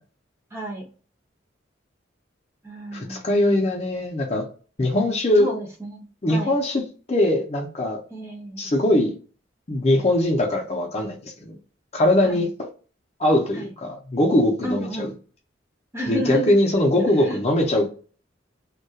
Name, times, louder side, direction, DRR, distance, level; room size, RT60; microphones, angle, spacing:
voice 1, 0.5-0.8 2.6-3.3 5.4-6.5 8.1-8.7 12.2-12.5 13.5-13.7 14.6-15.1 15.9-16.6 17.0-17.4, right 1 dB, 15° right, 0.5 m, -31 dB
voice 2, 2.9-4.5 4.8-5.5 6.2-8.0 8.6-9.2 9.7-11.6 11.9-12.7 13.2-15.1 16.1-17.9, left 1 dB, 35° left, 0.5 m, -21 dB
2.2 x 2.2 x 2.7 m
head